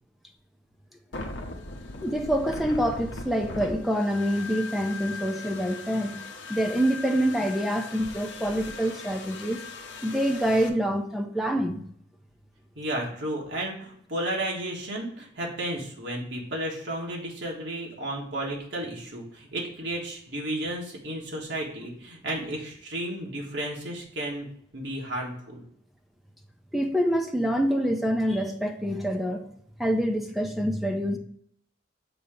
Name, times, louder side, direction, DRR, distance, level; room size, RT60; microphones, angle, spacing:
sound 1, 1.1-10.7, left 3 dB, 70° left, 0.8 m, -39 dB
voice 1, 2.0-6.2 6.5-9.7 10.0-11.8 26.7-29.4 29.8-31.2, equal, ahead, 3 dB, 0.6 m, -26 dB
voice 2, 12.7-24.5 24.7-25.6, right 1 dB, 65° right, -2 dB, 1.6 m, -33 dB
6.9 x 2.8 x 5.0 m, 0.64 s
head